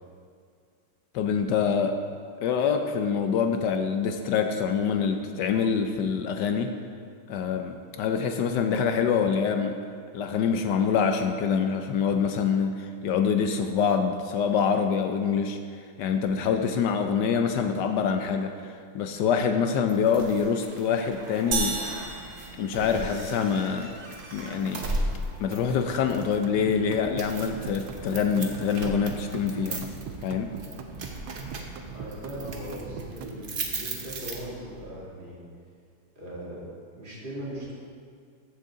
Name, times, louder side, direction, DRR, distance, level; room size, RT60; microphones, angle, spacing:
voice 1, 1.1-2.0 2.4-6.8 7.3-9.8 10.1-15.6 16.0-21.8 22.6-24.0 24.3-24.9 25.4-29.9 30.2-30.5, left 6 dB, 70° left, 6 dB, 1.1 m, -25 dB
sound 1, 19.9-34.8, right 2 dB, 50° right, 0.6 m, -38 dB
sound 2, 21.5-23.4, right 4 dB, 70° right, 1.8 m, -32 dB
sound 3, 25.7-33.4, right 7 dB, 90° right, 1.5 m, -40 dB
voice 2, 31.9-35.4 36.1-36.6 37.0-37.7, right 1 dB, 25° right, -7 dB, 2.5 m, -39 dB
14.5 x 6.6 x 3.7 m, 2.2 s
omnidirectional pair, 2.2 m